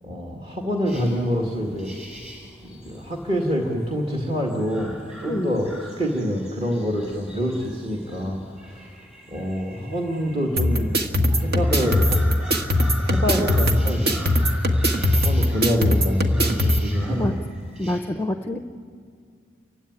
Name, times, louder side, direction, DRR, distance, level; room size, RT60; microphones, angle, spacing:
voice 1, 0.0-1.9 2.6-4.9 5.2-8.4 8.7-8.9 9.3-11.0 11.4-12.0 13.0-14.4 15.1-17.4, equal, 30° right, 0 dB, 2.1 m, -26 dB
sound 1, 0.9-18.0, equal, 5° right, 5.5 m, -42 dB
voice 2, 5.2-5.6 17.1-17.4 17.8-18.6, left 1 dB, 10° left, 6 dB, 0.7 m, -26 dB
sound 2, 10.6-16.8, left 1 dB, 55° right, 1.7 m, -20 dB
29.0 x 16.5 x 9.9 m, 2.2 s
head